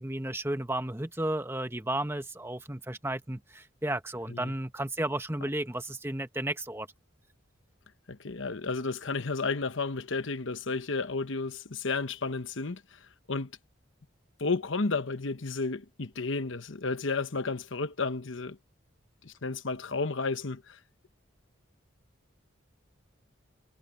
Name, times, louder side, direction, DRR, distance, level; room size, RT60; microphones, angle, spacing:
voice 1, 0.0-6.9, right 1 dB, 10° right, 1.3 m, -33 dB
voice 2, 8.1-12.8 13.3-13.5 14.4-18.6 19.2-20.6, left 3 dB, 70° left, 1.1 m, -32 dB
head